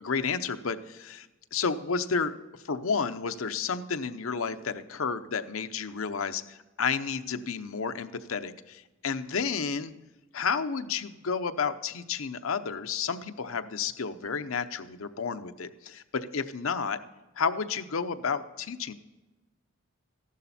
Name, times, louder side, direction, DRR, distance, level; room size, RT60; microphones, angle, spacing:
voice 1, 0.0-2.3 2.6-9.9 10.3-17.0 17.4-18.9, left 5 dB, 85° left, 9 dB, 0.7 m, -31 dB
14.5 x 11.5 x 4.2 m, 1.1 s
head